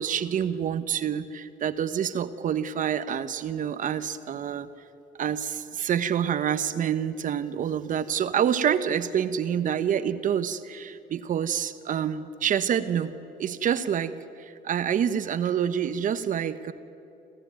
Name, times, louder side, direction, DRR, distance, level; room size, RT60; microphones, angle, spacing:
voice 1, 0.0-4.7 5.2-13.1 13.4-16.7, right 8 dB, 50° right, 12 dB, 1.1 m, -27 dB
25.5 x 15.0 x 9.3 m, 2.8 s
cardioid pair, 110°, 17 cm